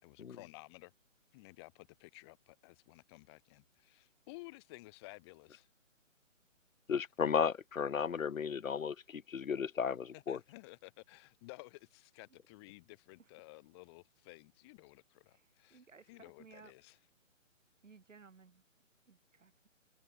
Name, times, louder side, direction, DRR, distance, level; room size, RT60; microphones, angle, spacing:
voice 1, 0.0-0.9 1.3-5.7 10.1-15.8 16.1-17.0, left 24 dB, 20° left, 4.1 m, -54 dB
voice 2, 6.9-10.4, left 7 dB, 85° left, 1.0 m, -34 dB
voice 3, 15.3-16.7 17.8-18.6 19.1-19.7, right 5 dB, 70° right, 7.2 m, -59 dB
hypercardioid pair, 160°, 39 cm